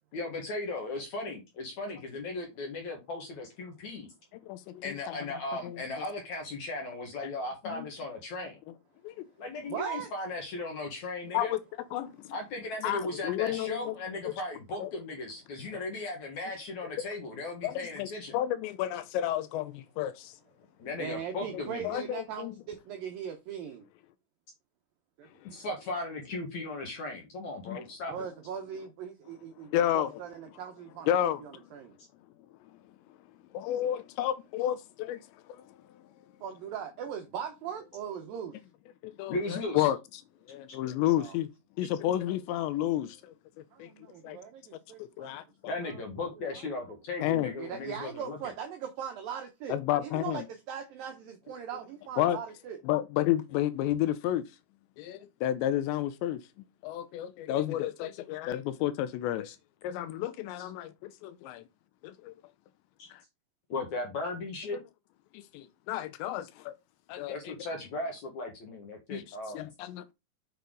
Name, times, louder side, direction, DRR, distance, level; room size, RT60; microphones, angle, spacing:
voice 1, 0.1-4.1 4.8-8.6 9.4-11.6 12.3-18.4 20.8-22.0 25.4-28.3 39.3-39.9 40.7-40.8 41.8-41.9 45.7-48.4 60.6-60.7 63.0-63.1 63.7-64.8 67.3-69.7, left 2 dB, 60° left, 2.1 m, -37 dB
voice 2, 4.5-5.1 5.6-5.8 7.7-7.9 9.0-9.3 11.3-11.6 11.9-12.3 12.8-14.0 14.3-14.4 14.8-14.9 17.6-18.1 18.3-20.3 21.8-22.5 27.7-27.8 29.7-30.1 31.1-31.4 33.5-35.2 35.5-35.6 39.0-40.0 40.5-41.5 41.8-43.3 43.8-43.9 44.2-44.4 45.0-45.7 47.2-47.5 49.7-50.5 52.2-52.4 52.8-54.5 55.0-56.4 56.8-59.6 59.8-61.6 62.0-62.3 63.1-63.2 65.3-66.7 67.1-67.6 69.1-69.2 69.5-70.1, left 12 dB, 80° left, 2.7 m, -31 dB
voice 3, 9.7-10.1 21.0-23.9 25.2-25.3 28.1-29.7 29.9-31.1 31.4-32.0 36.4-38.5 41.2-41.4 43.7-45.4 45.8-46.0 46.6-46.7 47.1-47.2 47.6-52.8, right 8 dB, 80° right, 2.0 m, -40 dB
6.8 x 6.4 x 3.8 m
omnidirectional pair, 5.3 m